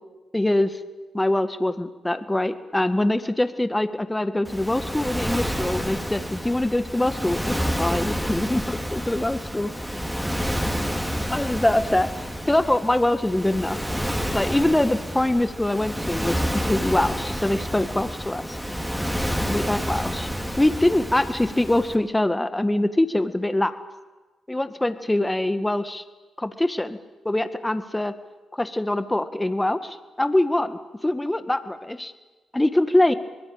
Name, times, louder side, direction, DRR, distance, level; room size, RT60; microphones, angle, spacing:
voice 1, 0.3-0.8 1.1-9.7 11.3-12.1 12.5-13.8 14.3-18.6 19.5-20.3 20.6-23.8 24.5-26.0 26.4-27.0 27.3-28.1 28.5-32.1 32.5-33.1, left 1 dB, 15° left, 11 dB, 1.8 m, -23 dB
Waves surf, 4.4-21.9, equal, 5° right, 4.1 m, -29 dB
24.5 x 21.0 x 8.9 m, 1.2 s
hypercardioid pair, 45°, 0 cm